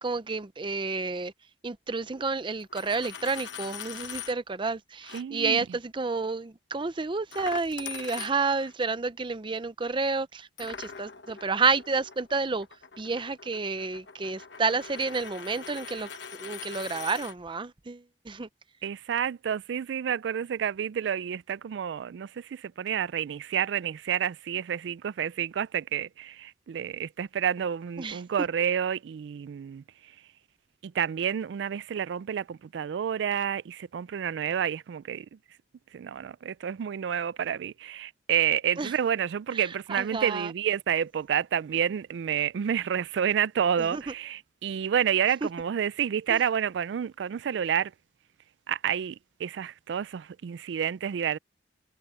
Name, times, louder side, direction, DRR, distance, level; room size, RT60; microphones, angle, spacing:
voice 1, 0.0-1.3 1.6-12.7 13.0-16.1 16.4-18.5 28.0-28.2 38.8-38.9 39.5-40.5 43.8-44.1 45.4-45.5 46.3-46.4, right 4 dB, 30° right, 0.6 m, -30 dB
Coin (dropping), 2.6-4.4 5.0-5.2 7.3-8.7 10.6-17.4, left 7 dB, 75° left, 1.2 m, -42 dB
voice 2, 5.1-5.6 18.8-29.8 30.8-35.3 35.9-47.9 48.7-51.4, right 8 dB, 75° right, 0.3 m, -29 dB
head